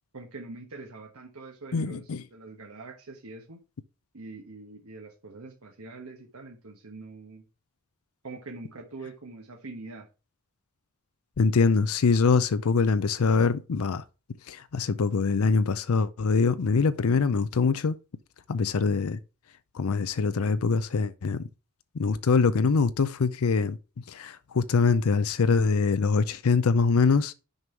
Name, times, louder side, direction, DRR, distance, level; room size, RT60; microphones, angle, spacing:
voice 1, 0.1-3.6 4.1-7.4 8.2-10.1, right 3 dB, 80° right, 1.3 m, -44 dB
voice 2, 1.7-2.2 11.4-14.0 14.5-18.0 18.5-19.2 19.7-21.5 21.9-23.8 24.1-27.3, left 4 dB, 80° left, 0.5 m, -24 dB
6.3 x 5.4 x 4.5 m
head